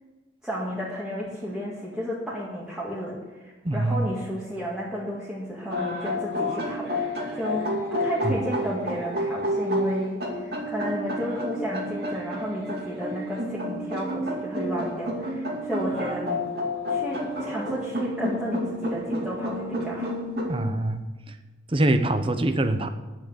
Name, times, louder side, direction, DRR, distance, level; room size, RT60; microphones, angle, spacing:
voice 1, 0.4-16.4 16.9-20.1, equal, 5° right, -8 dB, 2.0 m, -32 dB
voice 2, 3.6-4.1 8.2-8.4 20.5-21.0 21.3-21.4 21.7-22.9, right 1 dB, 30° right, 8 dB, 0.8 m, -24 dB
sound 1, 5.7-20.6, left 1 dB, 60° right, 2.5 m, -30 dB
10.5 x 7.9 x 8.3 m, 1.2 s
head